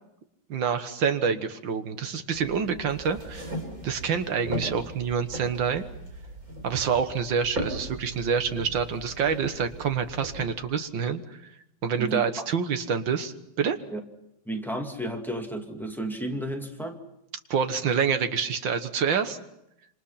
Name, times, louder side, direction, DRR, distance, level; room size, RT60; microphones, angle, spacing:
voice 1, 0.5-3.5 3.8-5.9 6.6-11.4 11.8-13.8 17.5-19.4, right 6 dB, 80° right, 9 dB, 2.2 m, -27 dB
sound 1, 2.3-10.4, right 1 dB, 45° right, 5.2 m, -38 dB
voice 2, 14.5-17.0, right 1 dB, ahead, 2 dB, 2.3 m, -32 dB
27.0 x 26.5 x 5.8 m, 0.82 s
omnidirectional pair, 2.0 m